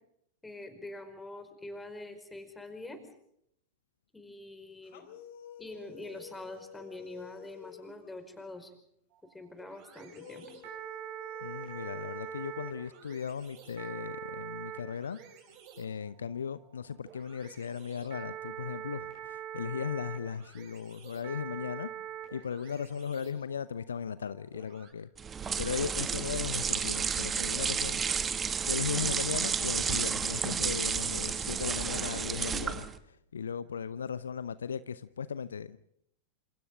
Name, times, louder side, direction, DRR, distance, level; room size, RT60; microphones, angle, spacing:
voice 1, 0.4-3.0 4.1-5.0 5.6-8.7 9.3-10.5, left 2 dB, 10° left, 4.9 m, -45 dB
sound 1, 4.8-8.6 9.9-13.5, left 8 dB, 55° left, 3.4 m, -52 dB
sound 2, 9.1-24.9, right 10 dB, 45° right, 7.6 m, -44 dB
voice 2, 11.4-15.2 15.8-21.9 22.3-25.1 25.6-28.3 28.6-35.8, left 7 dB, 70° left, 0.8 m, -37 dB
sound 3, 25.2-33.0, right 6 dB, 20° right, 1.4 m, -31 dB
28.5 x 27.5 x 3.7 m
figure-of-eight pair, 90°, 0 cm